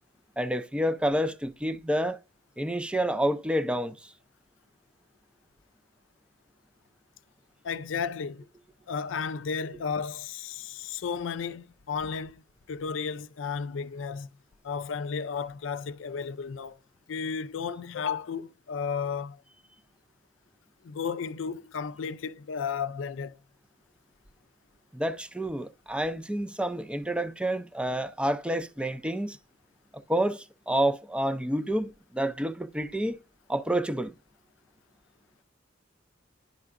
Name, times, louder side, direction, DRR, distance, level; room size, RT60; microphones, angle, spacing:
voice 1, 0.4-2.2 2.6-4.1 24.9-29.4 29.9-33.2 33.5-34.1, right 1 dB, 5° right, 0.4 m, -29 dB
voice 2, 7.6-8.4 8.9-12.4 12.7-14.3 14.6-16.8 17.1-19.4 20.8-23.4, left 6 dB, 85° left, 0.4 m, -33 dB
11.0 x 4.6 x 2.5 m
head